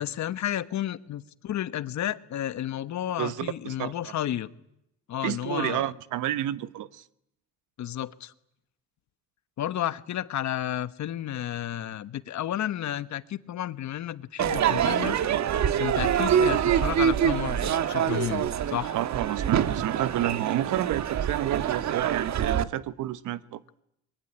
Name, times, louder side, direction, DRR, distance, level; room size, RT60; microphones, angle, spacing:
voice 1, 0.0-4.5 5.1-5.9 7.8-8.3 9.6-15.2 15.8-19.0, left 11 dB, 65° left, 1.3 m, -32 dB
voice 2, 3.2-3.9 5.2-7.0 18.9-23.6, right 13 dB, 90° right, 1.0 m, -30 dB
Crowd / Fireworks, 14.4-22.6, right 9 dB, 65° right, 1.4 m, -25 dB
24.0 x 22.0 x 10.0 m
cardioid pair, 90°, 30 cm